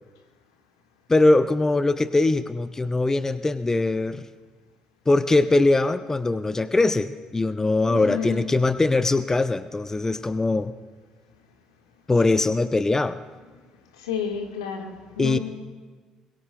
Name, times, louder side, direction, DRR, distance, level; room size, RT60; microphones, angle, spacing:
voice 1, 1.1-4.3 5.1-10.7 12.1-13.2 15.2-15.4, left 2 dB, 20° left, 12 dB, 0.6 m, -21 dB
voice 2, 7.9-8.4 14.0-15.4, left 7 dB, 80° left, 3 dB, 1.4 m, -30 dB
22.0 x 20.5 x 2.2 m, 1.3 s
hypercardioid pair, 50°, 3 cm